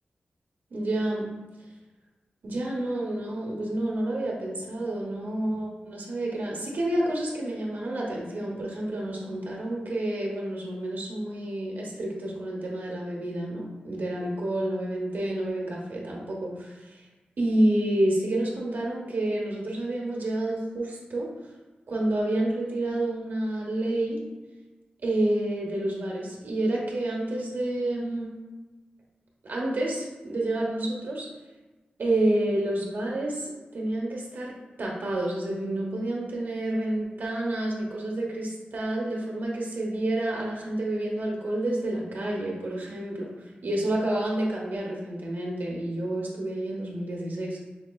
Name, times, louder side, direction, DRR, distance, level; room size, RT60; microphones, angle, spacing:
voice 1, 0.7-1.3 2.4-17.0 17.4-21.3 21.9-24.2 25.0-28.4 29.4-31.3 32.0-34.5 34.8-43.3 43.6-47.6, right 1 dB, 75° right, -3 dB, 1.0 m, -29 dB
5.3 x 3.0 x 2.3 m, 1.2 s
cardioid pair, 70°, 3 cm